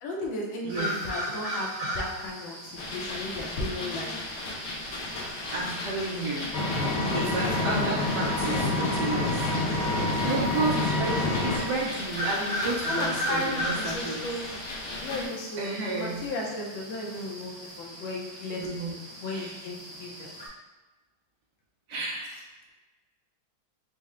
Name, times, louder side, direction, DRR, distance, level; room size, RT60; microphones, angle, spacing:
voice 1, 0.0-4.1 12.9-14.4 14.9-18.7 19.2-20.3, left 1 dB, 75° left, -1 dB, 1.4 m, -35 dB
voice 2, 0.6-1.1 5.5-6.5 7.1-9.5 10.2-14.5 15.6-16.2 18.5-19.0 19.3-19.6 21.9-22.7, right 2 dB, 70° right, -4 dB, 1.1 m, -32 dB
sound 1, 0.7-20.5, equal, 15° right, 0.8 m, -38 dB
sound 2, 2.8-15.3, left 2 dB, 90° left, 1.6 m, -37 dB
Engine, 6.5-11.6, left 2 dB, 60° left, 1.1 m, -27 dB
4.3 x 2.1 x 3.6 m, 1.1 s
omnidirectional pair, 2.2 m